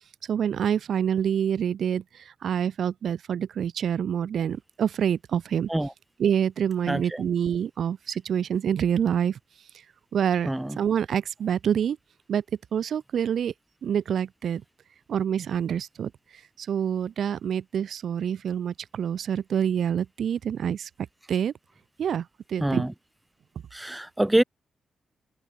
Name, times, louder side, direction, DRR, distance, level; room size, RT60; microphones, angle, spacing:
voice 1, 0.3-5.7 6.2-9.4 10.1-10.5 10.8-12.0 12.3-12.4 12.7-13.5 13.8-14.6 15.1-16.1 16.6-20.9 21.3-21.5 22.0-22.9, right 8 dB, 75° right, 4.6 m, -26 dB
voice 2, 6.9-7.2 10.5-10.8 22.6-22.9 23.7-24.4, right 1 dB, 10° right, 7.1 m, -25 dB
open air
cardioid pair, 80°, 0 cm